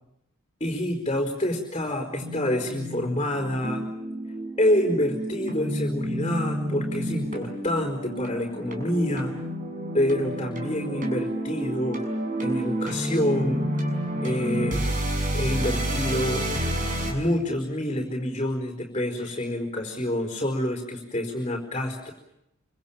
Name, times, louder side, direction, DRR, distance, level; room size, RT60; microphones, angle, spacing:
voice 1, 0.6-3.9 4.6-9.3 9.9-12.0 12.4-13.6 14.2-14.8 15.3-16.4 17.0-22.1, left 1 dB, 25° left, 2 dB, 4.8 m, -27 dB
sound 1, 2.2-17.1, right 1 dB, 35° right, 6.4 m, -30 dB
28.5 x 25.5 x 7.4 m, 0.83 s
head